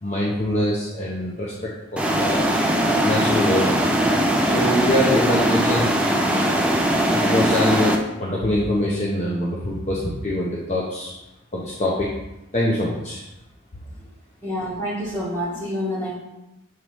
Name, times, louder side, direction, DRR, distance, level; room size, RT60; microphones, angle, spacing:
voice 1, 0.0-2.4 3.0-4.0 4.4-5.9 6.3-6.6 7.0-11.1 11.5-12.1 12.5-13.2, left 1 dB, 30° left, -4 dB, 0.7 m, -24 dB
sound 1, 2.0-8.0, right 1 dB, 5° right, 0.4 m, -20 dB
voice 2, 14.4-16.2, equal, 10° left, -10 dB, 2.2 m, -27 dB
7.1 x 4.7 x 3.1 m, 0.96 s
head